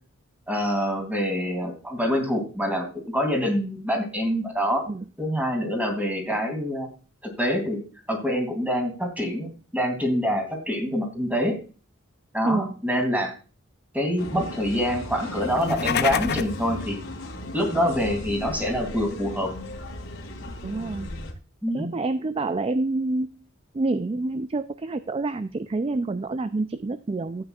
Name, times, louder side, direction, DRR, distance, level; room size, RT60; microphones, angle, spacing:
voice 1, 0.5-4.9 5.2-6.9 7.2-7.8 8.1-11.6 12.3-13.3 13.9-17.0 17.5-19.5 21.6-21.9, equal, 10° right, 3 dB, 2.9 m, -26 dB
voice 2, 12.4-12.8 20.6-21.1 21.7-23.4 23.7-27.4, right 2 dB, 25° right, 12 dB, 0.4 m, -27 dB
sound 1, 14.2-21.3, left 1 dB, 70° left, 2.7 m, -36 dB
sound 2, 15.5-16.6, left 7 dB, 55° left, 0.6 m, -27 dB
13.5 x 8.9 x 2.4 m, 0.36 s
head